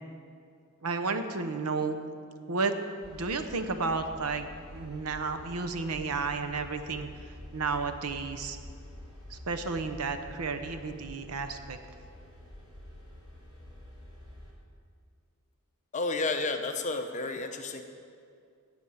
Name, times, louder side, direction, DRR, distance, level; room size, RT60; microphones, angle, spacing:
voice 1, 0.8-2.0 2.5-2.8 3.1-8.6 9.3-11.8, right 4 dB, 75° right, 8 dB, 0.8 m, -32 dB
sound 1, 3.0-14.5, left 1 dB, 25° right, 2.4 m, -48 dB
voice 2, 15.9-17.8, left 3 dB, 30° left, 6 dB, 0.7 m, -31 dB
18.0 x 6.3 x 5.6 m, 2.3 s
head